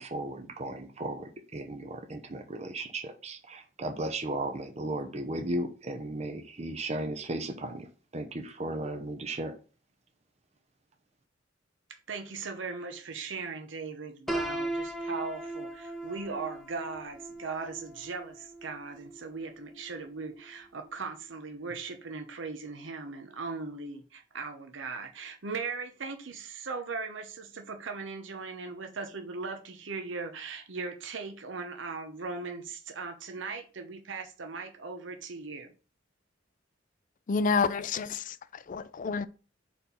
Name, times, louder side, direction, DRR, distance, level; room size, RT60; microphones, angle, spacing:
voice 1, 0.0-7.9 8.1-9.5, right 2 dB, 35° right, 0.8 m, -35 dB
voice 2, 12.1-35.7, right 4 dB, 70° right, 0.8 m, -39 dB
Piano, 14.3-20.1, right 1 dB, ahead, 0.8 m, -38 dB
voice 3, 37.3-39.3, left 5 dB, 45° left, 0.4 m, -29 dB
4.4 x 4.3 x 5.3 m
head